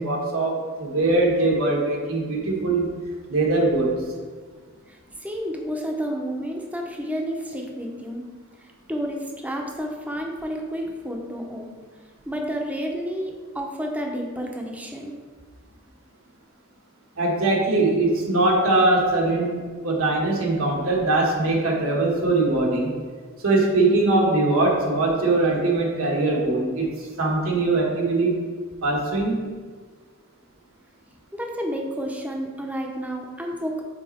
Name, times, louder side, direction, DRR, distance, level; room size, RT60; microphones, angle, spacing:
voice 1, 0.0-2.9 3.3-4.0 17.2-22.9 23.4-26.9 27.2-28.4 28.8-29.4, right 2 dB, 80° right, -2 dB, 1.4 m, -21 dB
voice 2, 4.9-8.3 8.6-11.7 12.3-15.2 31.3-33.8, equal, 5° right, 1 dB, 0.6 m, -30 dB
5.6 x 4.1 x 4.3 m, 1.5 s
head